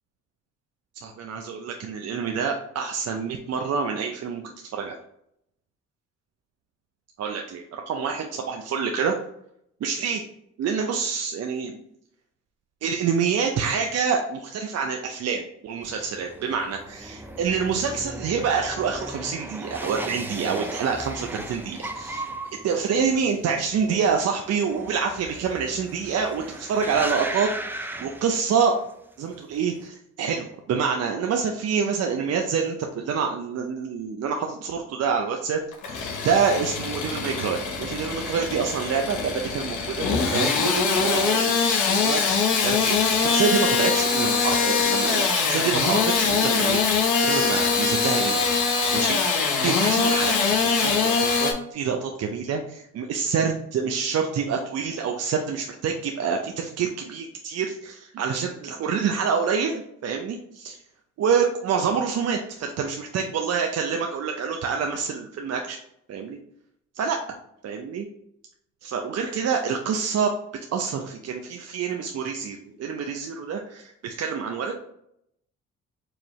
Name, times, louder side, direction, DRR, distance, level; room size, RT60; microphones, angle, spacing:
voice 1, 1.0-5.0 7.2-9.1 9.8-10.2 10.6-11.8 12.8-22.3 22.6-27.5 27.8-28.8 29.2-35.6 35.9-46.8 47.2-48.4 48.9-49.2 49.6-60.8 61.2-65.8 66.1-66.4 67.0-67.2 67.6-68.1 68.8-70.3 70.7-74.8, right 6 dB, 55° right, 3 dB, 0.5 m, -27 dB
sound 1, 15.8-28.9 29.2-29.8, right 1 dB, 5° right, 0.4 m, -37 dB
Engine starting / Sawing, 35.7-51.5, left 5 dB, 80° left, 1.1 m, -23 dB
4.7 x 2.6 x 3.0 m, 0.75 s
cardioid pair, 90°, 30 cm